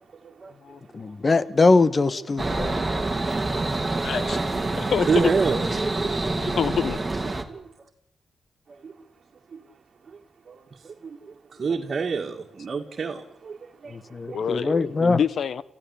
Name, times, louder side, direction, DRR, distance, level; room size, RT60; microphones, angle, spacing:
voice 1, 0.2-0.5 2.2-2.3 3.1-3.2 3.6-4.1 4.3-5.6 7.5-7.6 8.8-8.9 9.5-9.6 10.1-10.2 10.5-14.9, right 5 dB, 55° right, 2.2 m, -30 dB
voice 2, 0.9-2.8 13.9-15.2, left 3 dB, 40° left, 1.3 m, -22 dB
sound 1, 2.4-7.4, right 2 dB, 20° right, 2.8 m, -26 dB
voice 3, 4.0-4.4 4.8-5.3 6.4-7.0 14.3-15.6, left 7 dB, 75° left, 0.9 m, -26 dB
29.0 x 15.0 x 8.6 m
cardioid pair, 70°, 0 cm